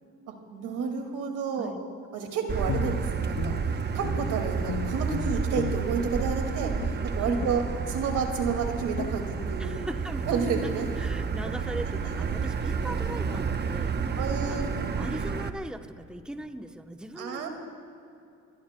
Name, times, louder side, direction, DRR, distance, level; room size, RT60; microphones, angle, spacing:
voice 1, 0.3-1.7 2.1-7.6 7.9-9.8 10.3-10.9 12.8-13.1 14.2-14.7 17.2-17.5, right 5 dB, 90° right, 4 dB, 2.1 m, -31 dB
Motor vehicle (road), 2.5-15.5, right 5 dB, 35° right, 0.8 m, -30 dB
Guitar, 2.6-4.4 4.6-6.4 6.8-7.0 7.4-7.7 8.1-8.2 8.5-8.7 8.9-9.2, left 10 dB, 55° left, 0.6 m, -36 dB
voice 2, 9.6-14.2 14.5-17.5, right 1 dB, 5° right, 6 dB, 0.8 m, -39 dB
29.0 x 21.0 x 2.2 m, 2.6 s
cardioid pair, 90°, 30 cm